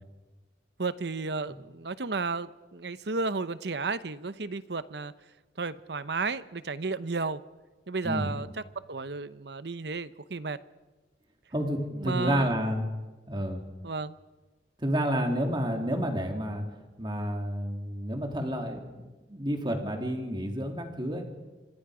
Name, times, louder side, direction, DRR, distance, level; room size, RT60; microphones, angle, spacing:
voice 1, 0.8-5.1 5.6-7.4 7.9-8.5 8.9-10.6 12.0-12.5 13.8-14.2, right 4 dB, 65° right, 14 dB, 0.9 m, -33 dB
voice 2, 8.0-8.4 11.5-12.9 13.3-13.6 14.8-16.6 17.0-21.3, equal, 25° right, 3 dB, 3.1 m, -30 dB
26.0 x 25.0 x 5.0 m, 1.2 s
head